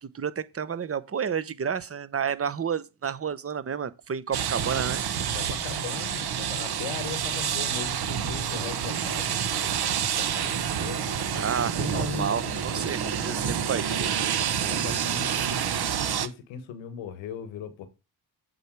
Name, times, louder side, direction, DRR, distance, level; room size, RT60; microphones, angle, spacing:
voice 1, 0.0-5.0 11.4-15.0, right 7 dB, 30° right, 0.9 m, -31 dB
sound 1, 4.3-16.3, right 8 dB, 60° right, 1.2 m, -28 dB
voice 2, 5.3-11.4 11.8-13.5 14.7-15.5 16.0-17.9, left 7 dB, 85° left, 1.4 m, -39 dB
7.9 x 5.6 x 4.7 m
supercardioid pair, 50°, 44 cm